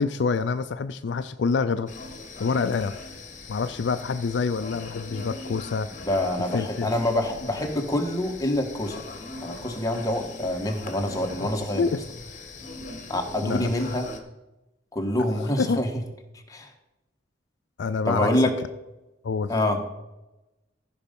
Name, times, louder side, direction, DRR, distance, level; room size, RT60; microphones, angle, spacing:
voice 1, 0.0-1.9 2.4-2.9 3.5-5.9 6.5-6.9 11.4-12.0 13.4-13.7 15.6-15.8 17.8-18.3 19.2-19.5, left 5 dB, 70° left, 11 dB, 0.4 m, -26 dB
sound 1, 1.9-14.2, left 3 dB, 40° left, 1.4 m, -41 dB
voice 2, 6.1-9.0 9.4-11.8 13.1-14.0 14.9-15.9 16.5-16.7 18.0-18.5 19.5-19.8, left 1 dB, 20° left, 3 dB, 1.3 m, -26 dB
15.0 x 5.3 x 5.3 m, 0.98 s
head